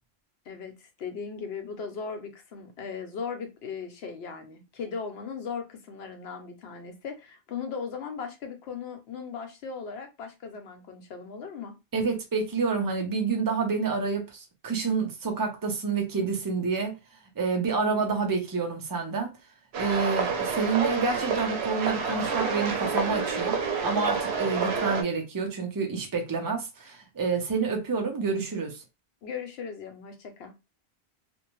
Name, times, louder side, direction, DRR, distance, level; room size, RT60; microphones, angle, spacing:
voice 1, 0.5-11.8 29.2-30.5, left 6 dB, 75° left, 0.9 m, -38 dB
voice 2, 11.9-17.0 17.4-19.3 19.8-28.8, right 4 dB, 25° right, 0.5 m, -28 dB
sound 1, 19.7-25.0, right 5 dB, 90° right, 0.9 m, -28 dB
2.6 x 2.1 x 3.0 m
omnidirectional pair, 1.1 m